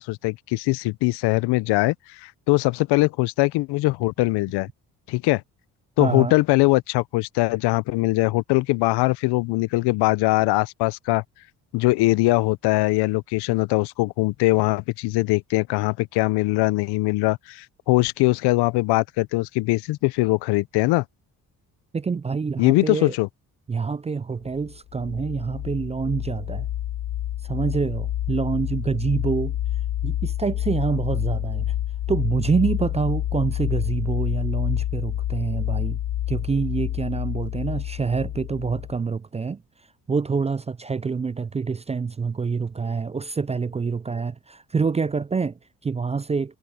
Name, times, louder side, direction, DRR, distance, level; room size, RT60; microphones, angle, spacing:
voice 1, 0.0-1.9 2.2-4.7 5.1-5.4 6.0-11.2 11.7-21.0 22.6-23.3, left 21 dB, 85° left, 0.6 m, -21 dB
voice 2, 6.0-6.3 21.9-23.2 23.7-26.7 27.4-29.6 30.0-31.7 32.1-36.0 36.3-39.6 40.1-46.6, right 5 dB, 20° right, 0.3 m, -26 dB
sound 1, 24.5-39.0, left 12 dB, 65° left, 1.2 m, -28 dB
supercardioid pair, 65°, 39 cm